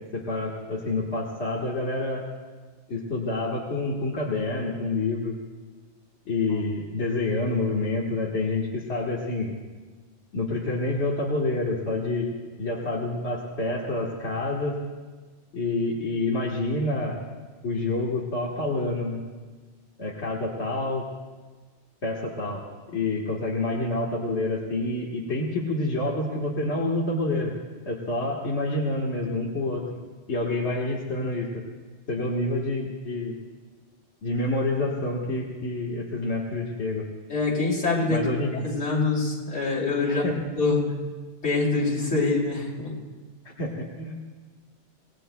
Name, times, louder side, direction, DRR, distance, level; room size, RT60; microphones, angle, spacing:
voice 1, 0.0-2.2 2.9-5.4 6.3-9.5 10.3-14.8 15.5-17.2 17.6-19.2 20.0-21.0 22.0-22.6 22.9-27.5 27.8-29.8 30.3-31.6 32.1-33.4 34.2-37.0 38.1-38.5 40.1-40.3 43.6-44.1, left 2 dB, 65° left, -4 dB, 1.8 m, -28 dB
voice 2, 37.3-38.2 38.6-40.9 41.4-43.0, left 3 dB, 80° left, -3 dB, 3.2 m, -25 dB
25.5 x 18.5 x 2.3 m, 1.4 s
omnidirectional pair, 1.2 m